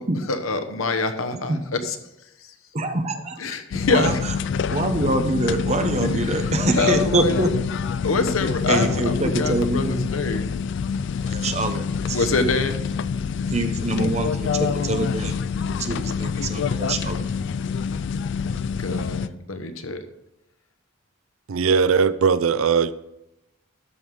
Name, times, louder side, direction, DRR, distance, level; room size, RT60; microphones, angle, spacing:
voice 1, 0.3-2.0 3.4-4.2 6.1-7.5 8.0-10.5 12.1-12.8 18.8-20.0, left 3 dB, 85° left, 8 dB, 1.0 m, -25 dB
voice 2, 2.7-3.6 3.9-4.2 4.7-7.5 8.7-10.0 11.2-12.3 13.5-17.2, right 2 dB, 35° right, 6 dB, 0.9 m, -25 dB
sound 1, 3.7-19.3, left 6 dB, 60° left, 0.3 m, -26 dB
voice 3, 21.5-22.9, right 6 dB, 85° right, 16 dB, 0.5 m, -19 dB
13.0 x 5.4 x 4.8 m, 0.88 s
head